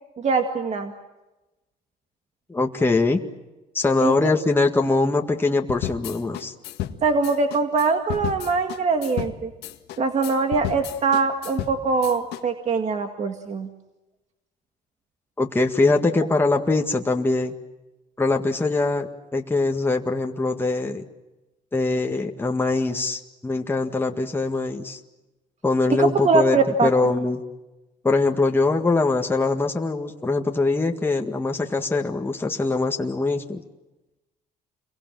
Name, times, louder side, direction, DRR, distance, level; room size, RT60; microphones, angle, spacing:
voice 1, 0.2-0.9 4.0-4.1 7.0-9.5 10.0-13.7 25.9-26.9, right 4 dB, 40° right, 5 dB, 2.0 m, -22 dB
voice 2, 2.5-3.2 3.7-6.5 15.4-17.5 18.2-21.0 21.7-25.0 25.6-27.4 28.0-33.6, left 3 dB, 15° left, 2 dB, 1.8 m, -22 dB
sound 1, 5.7-12.4, left 12 dB, 80° left, 1.8 m, -33 dB
28.5 x 23.0 x 7.6 m, 1.1 s
cardioid pair, 110°, 17 cm